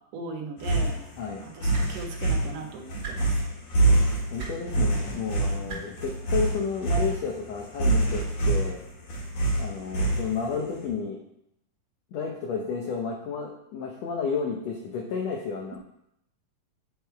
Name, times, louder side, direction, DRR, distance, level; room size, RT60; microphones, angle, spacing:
voice 1, 0.1-1.0 1.4-3.4 5.6-5.8, right 2 dB, 75° right, 1 dB, 1.5 m, -38 dB
sound 1, 0.6-10.6, right 2 dB, 55° left, 2.5 m, -25 dB
sound 2, 1.7-1.9 3.0-3.1 4.4-4.5 5.7-5.8 7.0-7.1, right 5 dB, 45° right, 1.9 m, -36 dB
voice 2, 4.3-8.8 9.6-11.2 12.1-15.8, left 5 dB, 80° left, 0 dB, 1.5 m, -31 dB
9.0 x 3.5 x 4.5 m, 0.77 s
omnidirectional pair, 3.9 m